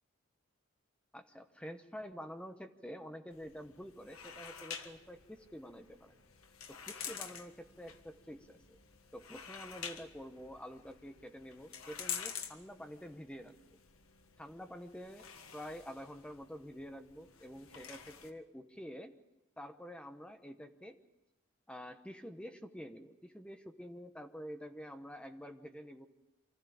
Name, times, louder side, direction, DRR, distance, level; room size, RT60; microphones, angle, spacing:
voice 1, 1.1-6.2 6.7-8.8 9.1-13.8 14.4-15.3 15.5-19.1 19.6-21.0 21.7-26.1, equal, 5° left, 7 dB, 0.9 m, -48 dB
sound 1, 3.3-18.3, left 7 dB, 90° left, 1.5 m, -48 dB
24.5 x 14.5 x 8.6 m, 1.0 s
head